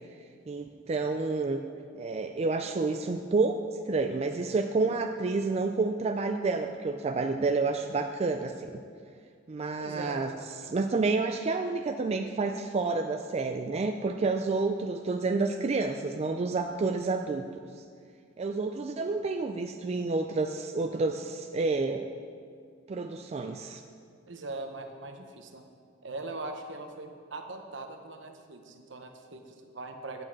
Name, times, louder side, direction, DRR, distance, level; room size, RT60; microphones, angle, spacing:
voice 1, 0.5-1.6 1.9-3.6 3.9-8.8 9.5-10.3 10.7-17.5 18.4-22.1 22.9-23.8, right 3 dB, 35° right, 6 dB, 0.4 m, -29 dB
voice 2, 9.8-10.3 24.2-25.7 26.0-30.2, right 2 dB, 70° right, 5 dB, 0.9 m, -41 dB
8.8 x 6.3 x 7.5 m, 2.2 s
head